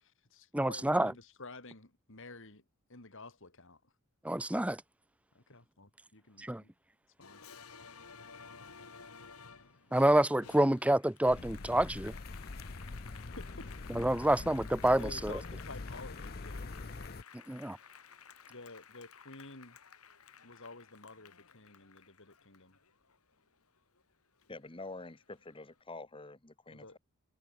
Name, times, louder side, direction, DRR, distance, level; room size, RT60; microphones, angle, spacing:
voice 1, 0.0-2.6 2.9-3.9 5.3-6.7 7.2-7.4 13.4-13.7 15.0-16.8 18.5-19.8 20.4-22.8 26.7-27.0, left 3 dB, 60° left, 3.5 m, -51 dB
voice 2, 0.5-1.1 4.2-4.8 6.4-6.6 9.9-12.1 13.9-15.3 17.5-17.8, right 1 dB, 5° right, 0.6 m, -28 dB
Applause, 7.2-24.0 24.4-25.6, left 6 dB, 75° left, 3.1 m, -54 dB
sound 1, 11.3-17.2, left 3 dB, 45° left, 0.8 m, -44 dB
voice 3, 24.5-27.0, left 3 dB, 25° left, 1.3 m, -47 dB
head